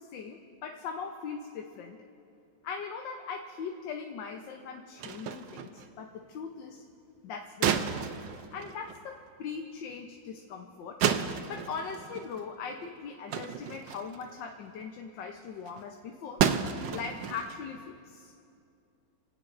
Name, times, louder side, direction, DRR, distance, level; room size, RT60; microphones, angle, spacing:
voice 1, 0.0-2.0 2.6-6.8 7.2-8.1 8.5-11.0 11.5-16.5 16.9-18.3, left 6 dB, 75° left, 3 dB, 1.5 m, -40 dB
sound 1, 5.0-5.9 7.6-9.1 9.9-10.0 11.0-12.4 12.7-12.9 13.3-14.3 14.7-14.8 15.2-15.3 15.7-15.8 16.4-17.6, right 8 dB, 75° right, 1.4 m, -32 dB
28.5 x 17.5 x 2.6 m, 2.6 s
omnidirectional pair, 2.0 m